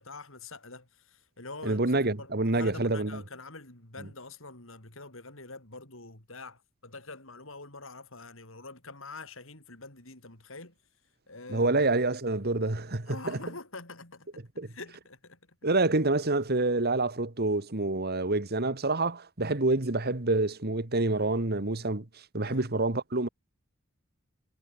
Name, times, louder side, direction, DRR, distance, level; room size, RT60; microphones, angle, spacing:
voice 1, 0.0-10.7 11.3-11.8 13.1-15.6 22.4-22.7, left 3 dB, 65° left, 5.3 m, -45 dB
voice 2, 1.6-3.2 4.0-4.1 11.5-13.2 14.6-14.7 15.6-22.1 22.3-23.3, right 2 dB, 50° right, 1.8 m, -27 dB
head